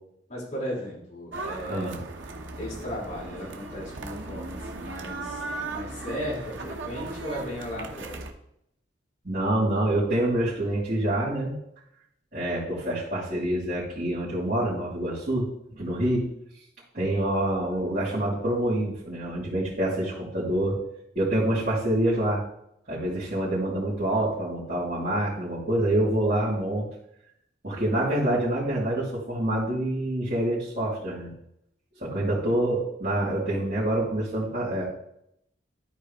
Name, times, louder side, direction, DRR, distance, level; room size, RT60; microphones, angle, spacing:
voice 1, 0.3-1.9 2.6-8.2, equal, 40° left, -5 dB, 3.4 m, -36 dB
sound 1, 1.3-8.3, right 3 dB, 85° right, 1.0 m, -37 dB
voice 2, 1.7-2.0 9.2-11.5 12.3-16.2 16.9-20.8 21.1-22.4 22.9-26.9 27.6-31.3 32.0-34.8, right 1 dB, 45° right, -13 dB, 3.4 m, -26 dB
12.5 x 4.5 x 3.6 m, 0.75 s
head